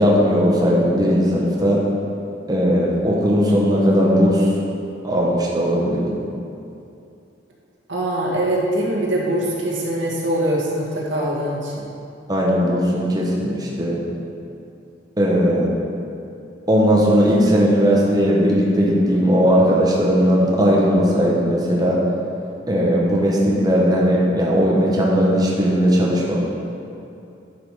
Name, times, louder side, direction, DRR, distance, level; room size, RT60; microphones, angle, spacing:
voice 1, 0.0-1.8 2.5-4.5 5.0-6.2 12.3-14.0 15.2-15.7 16.7-22.0 22.7-26.4, equal, 20° right, -4 dB, 1.2 m, -17 dB
voice 2, 7.9-11.9, right 1 dB, 85° right, -4 dB, 2.0 m, -23 dB
11.0 x 5.9 x 5.0 m, 2.6 s
head